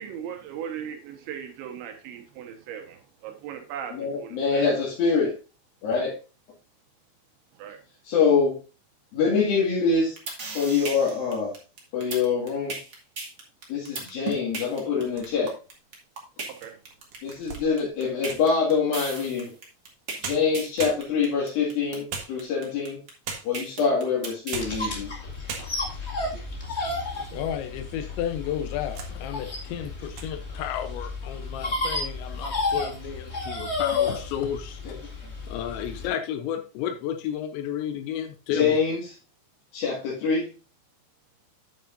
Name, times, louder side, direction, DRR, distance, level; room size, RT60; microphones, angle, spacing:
voice 1, 0.0-4.6 7.6-7.8 16.5-16.7, right 8 dB, 80° right, 3.5 m, -38 dB
voice 2, 3.9-5.3 5.8-6.1 8.0-8.6 9.1-10.2 10.5-11.5 11.9-12.8 13.7-15.5 17.2-19.5 20.2-23.0 23.4-25.1 34.9-35.0 38.5-39.0 39.7-40.5, left 5 dB, 60° left, 3.6 m, -25 dB
sound 1, 9.9-24.6, right 4 dB, 30° right, 1.8 m, -36 dB
sound 2, 14.9-15.7 16.3-16.4 16.9-18.6 19.9-20.0 20.2-21.4 22.1-22.8 23.2-23.7 24.3-24.9 25.1-25.2 25.5-26.0 26.6-27.4 27.7-27.8 28.5-29.2 29.5-29.8 30.1-30.3, right 5 dB, 60° right, 2.5 m, -39 dB
sound 3, 24.6-36.1, left 3 dB, 40° left, 0.9 m, -32 dB
voice 3, 27.3-34.8 35.5-38.8, left 9 dB, 80° left, 3.0 m, -32 dB
9.3 x 9.0 x 2.6 m
omnidirectional pair, 5.2 m